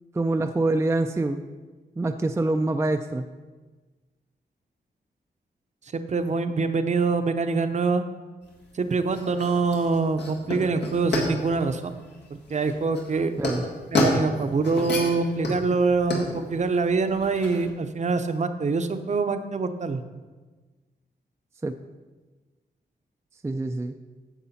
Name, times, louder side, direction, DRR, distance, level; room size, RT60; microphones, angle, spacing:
voice 1, 0.1-1.4 2.0-3.3 13.4-13.6 21.6-21.7 23.4-23.9, right 2 dB, 15° right, 6 dB, 0.4 m, -25 dB
voice 2, 5.9-8.0 8.7-12.0 12.3-13.5 13.9-20.0, right 4 dB, 45° right, 8 dB, 0.7 m, -25 dB
sound 1, 8.4-17.7, left 2 dB, 85° left, 1.8 m, -30 dB
9.8 x 7.3 x 4.1 m, 1.3 s
cardioid pair, 90°, 17 cm